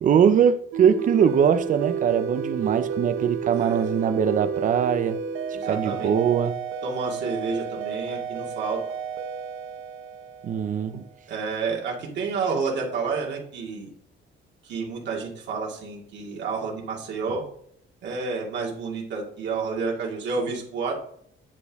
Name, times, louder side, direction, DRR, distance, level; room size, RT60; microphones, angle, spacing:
voice 1, 0.0-5.2 5.7-6.5 10.4-11.0, right 8 dB, 40° right, 0.5 m, -21 dB
sound 1, 0.7-11.1, right 6 dB, 85° right, 0.7 m, -31 dB
voice 2, 3.5-4.0 5.5-6.1 6.8-8.8 11.3-13.9 14.6-17.4 18.0-20.9, right 4 dB, 60° right, 2.1 m, -30 dB
9.6 x 4.4 x 3.5 m
cardioid pair, 175°, 21 cm